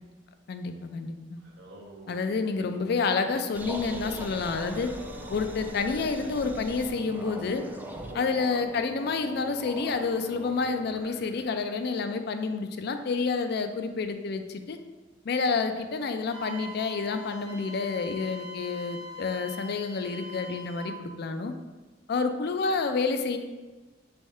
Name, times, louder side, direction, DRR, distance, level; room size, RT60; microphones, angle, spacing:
voice 1, 0.5-1.4 2.1-4.9 5.3-7.7 8.1-14.8 15.2-21.5 22.1-23.4, left 4 dB, 60° left, 8 dB, 0.4 m, -29 dB
Singing, 1.4-11.1, equal, 70° right, 0.9 m, -46 dB
sound 1, 3.5-11.4, right 1 dB, 10° right, 0.3 m, -42 dB
Wind instrument woodwind instrument, 16.3-21.0, left 1 dB, 85° right, 1.5 m, -43 dB
3.6 x 3.4 x 4.2 m, 1.2 s
head